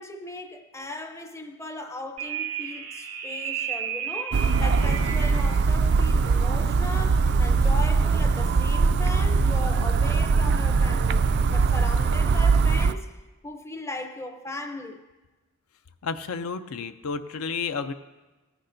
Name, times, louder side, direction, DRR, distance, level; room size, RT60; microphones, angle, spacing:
voice 1, 0.0-13.1 13.4-15.0, left 1 dB, 10° left, 0.5 m, -37 dB
sound 1, 2.2-5.7, right 8 dB, 85° right, 0.9 m, -33 dB
sound 2, 4.3-12.9, right 4 dB, 50° right, 0.3 m, -21 dB
voice 2, 16.0-17.9, left 5 dB, 75° left, 0.5 m, -31 dB
17.5 x 9.8 x 2.6 m
head